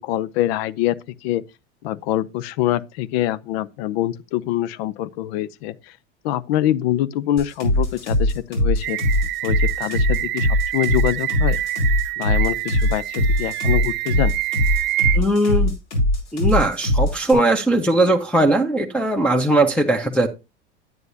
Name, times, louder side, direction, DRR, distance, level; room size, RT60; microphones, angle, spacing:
voice 1, 0.0-1.4 1.8-6.0 6.2-9.0 9.4-11.6 12.2-14.3, left 13 dB, 65° left, 0.7 m, -24 dB
sound 1, 7.4-17.3, left 1 dB, 80° left, 5.3 m, -20 dB
sound 2, 8.8-15.2, right 16 dB, 35° right, 0.4 m, -26 dB
voice 2, 15.1-15.7 16.3-20.3, right 1 dB, 5° left, 1.0 m, -19 dB
9.5 x 9.4 x 2.7 m
hypercardioid pair, 90°, 34 cm